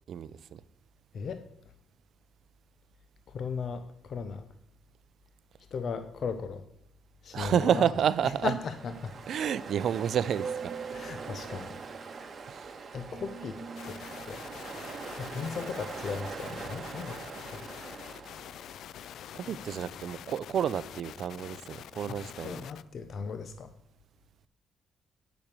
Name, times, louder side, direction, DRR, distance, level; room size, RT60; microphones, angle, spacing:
voice 1, 0.1-0.6 7.3-8.5 9.3-10.7 12.5-12.7 19.3-22.6, right 9 dB, 65° right, 0.5 m, -30 dB
voice 2, 3.3-4.4 5.7-6.6 7.2-7.9 8.4-9.1 10.9-11.7 12.9-13.6 13.8-14.0 14.3-14.4 15.2-17.2 17.5-17.6 22.1-22.2 22.4-23.7, left 5 dB, 55° left, 0.7 m, -36 dB
Ocean, 7.9-18.9, right 5 dB, 45° right, 1.3 m, -42 dB
sound 1, 13.8-22.8, left 10 dB, 75° left, 0.3 m, -46 dB
8.8 x 6.2 x 6.8 m
cardioid pair, 90°, 0 cm